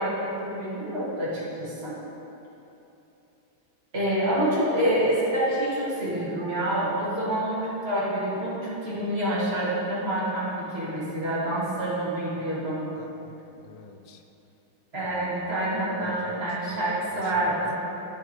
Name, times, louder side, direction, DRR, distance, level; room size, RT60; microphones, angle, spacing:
voice 1, 0.0-1.9 3.9-12.9 14.9-17.8, right 1 dB, 30° right, -9 dB, 2.6 m, -27 dB
voice 2, 12.9-14.2 15.0-15.4 16.0-16.4 17.1-17.2 17.6-17.8, left 6 dB, 85° left, 5 dB, 1.5 m, -47 dB
14.0 x 4.8 x 4.5 m, 2.9 s
omnidirectional pair, 2.1 m